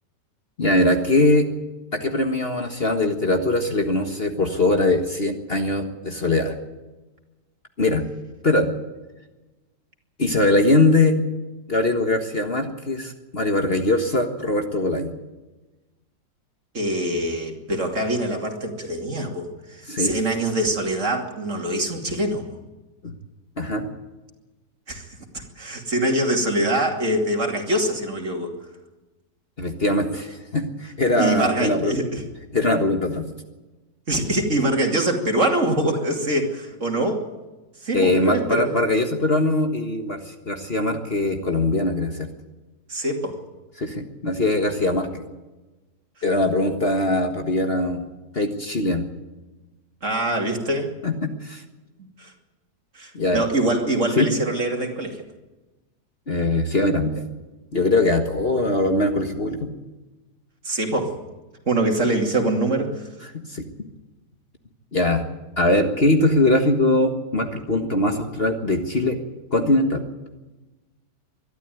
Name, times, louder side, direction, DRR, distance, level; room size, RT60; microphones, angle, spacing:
voice 1, 0.6-1.5 1.9-6.6 7.8-8.0 8.4-8.7 10.2-11.2 11.7-15.1 19.9-20.2 23.0-23.1 23.6-23.9 29.6-31.9 32.5-33.3 37.9-42.3 43.8-45.2 46.2-48.0 48.3-49.0 51.0-51.6 53.1-53.4 54.2-54.3 56.3-57.2 57.7-59.7 63.3-63.6 64.9-65.3 65.6-69.2 69.5-70.0, left 2 dB, 35° left, 5 dB, 1.7 m, -21 dB
voice 2, 16.7-22.6 24.9-25.1 25.3-28.5 31.2-32.2 34.1-37.2 37.8-38.8 42.9-43.4 50.0-50.9 52.2-52.3 52.9-55.2 60.6-61.1 61.7-63.1, right 1 dB, 45° right, 3 dB, 2.9 m, -24 dB
23.0 x 12.5 x 9.3 m, 1.1 s
omnidirectional pair, 1.9 m